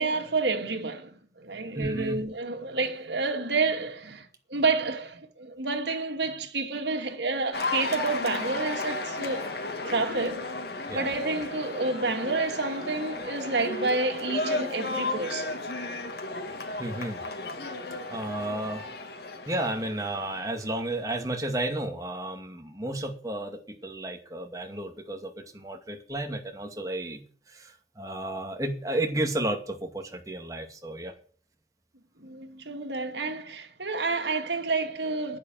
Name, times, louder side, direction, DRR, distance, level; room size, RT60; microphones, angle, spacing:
voice 1, 0.0-9.5 9.8-10.5 10.9-15.6 32.2-35.4, right 3 dB, 80° right, 2.3 m, -29 dB
voice 2, 1.7-2.2 10.9-11.3 16.8-17.2 18.1-18.9 19.5-27.2 27.5-31.1, right 1 dB, 20° right, 2.2 m, -32 dB
Cheering / Applause, 7.5-20.9, left 2 dB, 65° left, 2.0 m, -34 dB
10.5 x 9.8 x 7.6 m
head